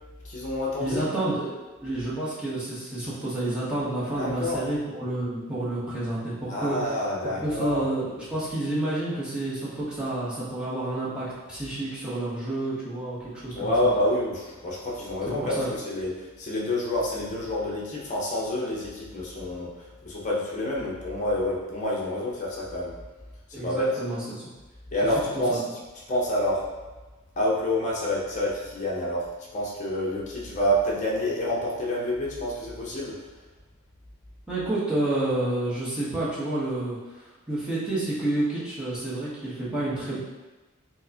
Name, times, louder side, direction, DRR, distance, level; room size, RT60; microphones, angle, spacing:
voice 1, 0.2-1.0 4.2-4.6 6.5-7.8 13.6-16.1 16.4-19.7 20.0-22.9 23.5-23.9 24.9-25.6 26.1-26.6 27.4-29.3 29.5-33.2, left 1 dB, 35° left, -5 dB, 0.7 m, -28 dB
voice 2, 0.8-1.5 1.8-13.9 15.3-15.7 23.5-24.4 25.3-25.6 34.5-40.2, right 2 dB, 5° right, -10 dB, 0.9 m, -29 dB
4.5 x 2.1 x 2.7 m, 1.2 s
head